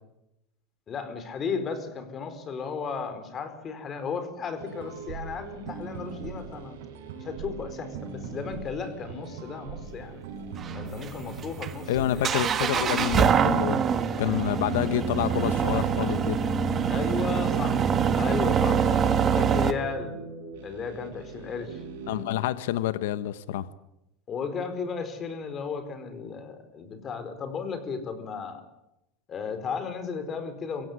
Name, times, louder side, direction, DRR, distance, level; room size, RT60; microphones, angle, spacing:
voice 1, 0.9-6.8 7.2-10.2 10.7-12.3 16.9-17.9 18.1-20.2 20.6-21.8 24.3-28.6 29.3-30.9, left 5 dB, 30° left, 9 dB, 4.5 m, -34 dB
sound 1, 4.6-22.4, right 5 dB, 80° right, 6.9 m, -41 dB
sound 2, 10.6-19.7, right 7 dB, 30° right, 1.6 m, -25 dB
voice 2, 11.9-13.8 14.2-16.4 22.1-23.7, left 13 dB, 80° left, 14 dB, 1.2 m, -28 dB
24.5 x 16.5 x 9.8 m, 0.88 s
supercardioid pair, 135°, 0 cm